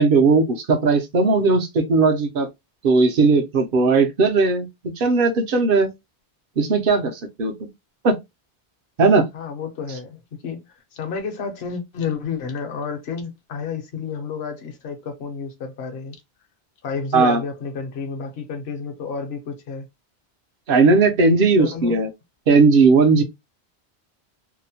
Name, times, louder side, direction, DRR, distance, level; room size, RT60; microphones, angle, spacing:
voice 1, 0.0-2.5 2.8-5.9 6.6-7.7 8.0-8.2 9.0-9.3 17.1-17.4 20.7-22.1 22.5-23.2, right 4 dB, 60° right, 0.8 m, -17 dB
voice 2, 9.3-16.2 16.8-19.8 21.6-22.0, left 5 dB, 65° left, 1.0 m, -31 dB
2.8 x 2.1 x 2.7 m
omnidirectional pair, 1.1 m